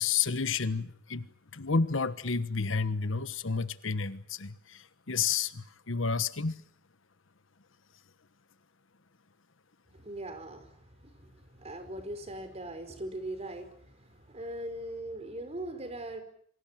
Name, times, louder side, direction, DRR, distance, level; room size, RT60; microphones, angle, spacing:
voice 1, 0.0-6.5, left 5 dB, 85° left, 1.3 m, -31 dB
voice 2, 9.9-16.2, right 1 dB, 35° right, 4.8 m, -40 dB
28.0 x 25.0 x 7.5 m
head